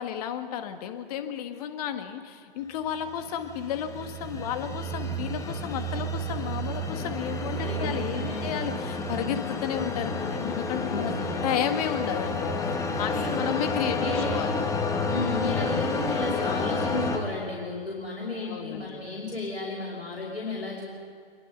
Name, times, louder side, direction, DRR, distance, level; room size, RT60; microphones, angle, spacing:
voice 1, 0.0-11.1 11.4-12.7 12.9-14.0 14.3-14.6 18.4-19.0, left 9 dB, 40° left, 8 dB, 1.7 m, -32 dB
sound 1, 3.1-17.2, left 2 dB, 10° left, 1.7 m, -30 dB
voice 2, 7.6-8.5 10.8-11.3 13.1-13.4 13.9-14.2 15.1-20.9, left 2 dB, 85° left, -4 dB, 5.3 m, -33 dB
25.5 x 22.5 x 5.6 m, 2.3 s
figure-of-eight pair, 120°, 31 cm